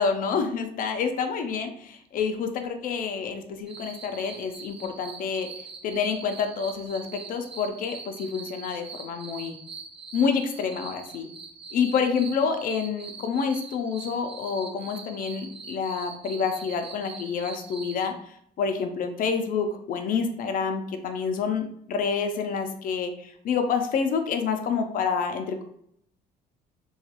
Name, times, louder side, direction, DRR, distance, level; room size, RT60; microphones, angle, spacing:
voice 1, 0.0-5.5 5.8-9.6 10.1-11.3 11.7-18.1 18.6-25.6, left 5 dB, 55° left, 6 dB, 0.5 m, -28 dB
sound 1, 3.7-18.1, right 5 dB, 35° right, 0.5 m, -43 dB
3.0 x 2.3 x 2.9 m, 0.69 s
cardioid pair, 110°, 17 cm